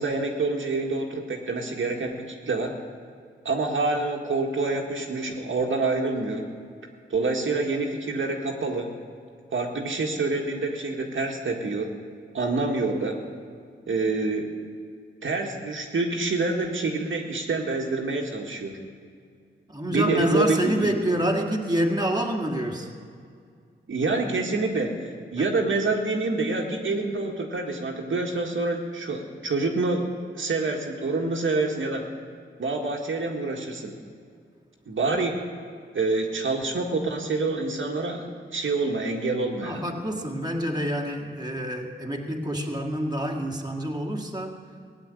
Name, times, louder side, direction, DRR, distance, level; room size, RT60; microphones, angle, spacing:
voice 1, 0.0-2.8 3.5-6.5 7.1-8.9 9.5-11.9 12.3-13.2 13.9-14.5 15.2-18.8 19.9-20.9 23.9-25.0 25.3-30.1 30.4-32.0 32.6-33.9 34.9-35.4 35.9-38.2 38.5-39.9, right 3 dB, 75° right, 1 dB, 1.8 m, -27 dB
voice 2, 19.7-22.9 25.4-25.5 39.5-44.6, right 1 dB, 20° right, 1 dB, 1.9 m, -27 dB
16.5 x 7.8 x 9.7 m, 2.2 s
cardioid pair, 60°, 20 cm